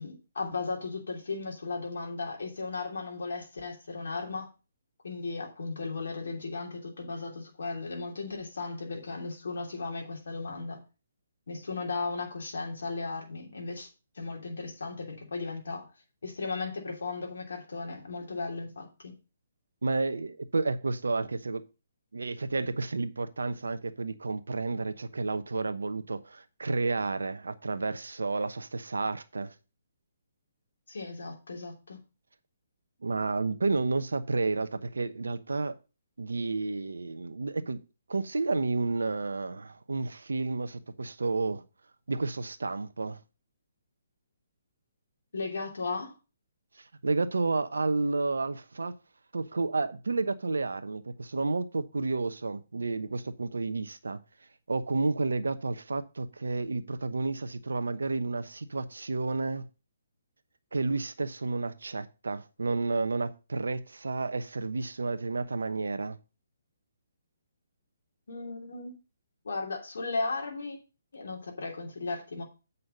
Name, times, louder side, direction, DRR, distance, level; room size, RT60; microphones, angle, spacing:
voice 1, 0.0-4.5 5.0-10.8 11.5-13.9 14.1-15.9 16.2-19.1 30.9-32.0 45.3-46.1 68.3-68.9 69.4-70.8 71.1-72.4, left 3 dB, 70° left, 3.0 m, -36 dB
voice 2, 19.8-21.6 22.1-29.5 33.0-35.7 36.2-37.8 38.1-41.6 42.1-43.2 47.0-48.9 49.3-54.2 54.7-59.6 60.7-66.2, right 3 dB, 80° right, 1.0 m, -31 dB
8.2 x 5.6 x 5.4 m
figure-of-eight pair, 140°, 0 cm